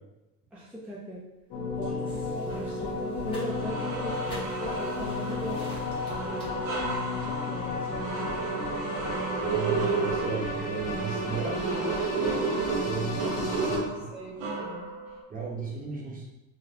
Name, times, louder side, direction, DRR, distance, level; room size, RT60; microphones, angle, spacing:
voice 1, 0.5-1.2 1.8-5.6 6.3-6.6 6.9-8.6 8.9-9.5 12.9-13.4 13.7-15.2, right 1 dB, 5° right, -7 dB, 0.6 m, -39 dB
sound 1, 1.5-13.8, left 2 dB, 60° left, 1.1 m, -33 dB
sound 2, 2.1-7.3, left 1 dB, 15° left, 1.1 m, -49 dB
sound 3, 2.5-2.7 3.2-15.2, right 4 dB, 90° right, 0.8 m, -33 dB
voice 2, 9.4-12.1 12.4-13.8 15.3-16.3, right 4 dB, 25° right, -2 dB, 0.9 m, -35 dB
4.0 x 2.1 x 2.8 m, 0.96 s
cardioid pair, 130°, 31 cm